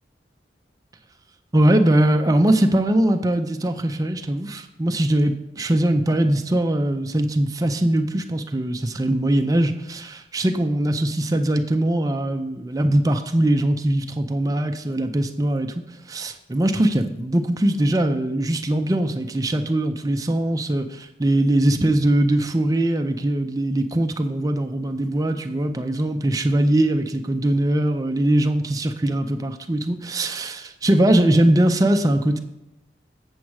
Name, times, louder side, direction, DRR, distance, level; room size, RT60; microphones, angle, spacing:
voice 1, 1.5-15.7 16.1-32.4, right 1 dB, 20° right, 6 dB, 0.4 m, -21 dB
7.4 x 7.1 x 4.7 m, 0.93 s
head